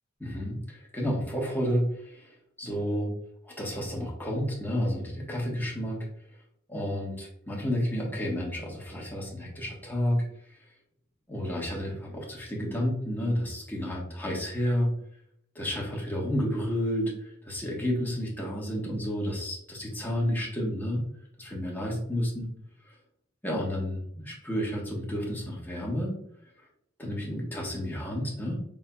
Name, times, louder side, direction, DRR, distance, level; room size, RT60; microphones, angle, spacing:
voice 1, 0.2-3.1 3.4-6.0 6.7-10.2 10.5-10.6 11.3-14.9 15.5-21.0 21.4-22.5 22.9-23.0 23.4-26.1 27.0-28.6, equal, 10° left, -4 dB, 1.3 m, -31 dB
5.2 x 3.6 x 2.3 m, 0.71 s
head